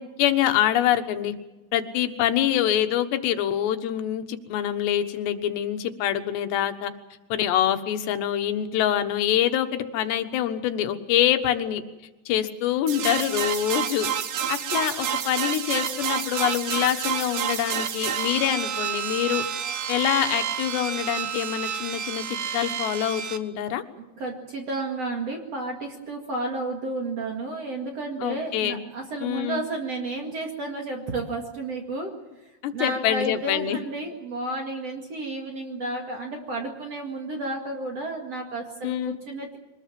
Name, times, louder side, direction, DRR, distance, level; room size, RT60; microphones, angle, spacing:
voice 1, 0.0-1.4 1.7-6.9 7.3-11.8 12.3-14.1 14.5-19.5 19.9-23.8 28.2-28.8 29.2-29.6 32.6-33.8 38.8-39.2, left 11 dB, 80° left, 7 dB, 3.5 m, -25 dB
sound 1, 12.9-23.4, right 8 dB, 85° right, 1.5 m, -29 dB
voice 2, 24.2-32.1 32.4-39.6, right 2 dB, 45° right, 2 dB, 2.6 m, -32 dB
24.0 x 20.0 x 7.6 m, 1.0 s
omnidirectional pair, 4.9 m